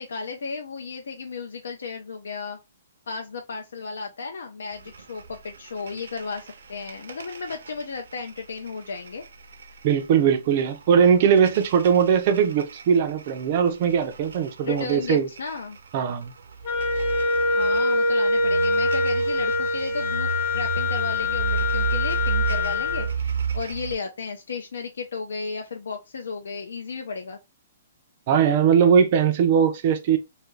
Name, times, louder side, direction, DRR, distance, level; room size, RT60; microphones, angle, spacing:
voice 1, 0.0-2.6 3.1-9.2 14.6-15.8 17.5-27.4, left 5 dB, 85° left, 0.5 m, -34 dB
sound 1, 4.7-24.0, right 6 dB, 80° right, 0.5 m, -33 dB
voice 2, 9.8-15.3 15.9-16.3 28.3-30.2, right 7 dB, 30° right, 0.4 m, -20 dB
Wind instrument woodwind instrument, 16.6-23.1, left 2 dB, 30° left, 0.5 m, -24 dB
2.6 x 2.4 x 3.1 m
hypercardioid pair, 175°, 0 cm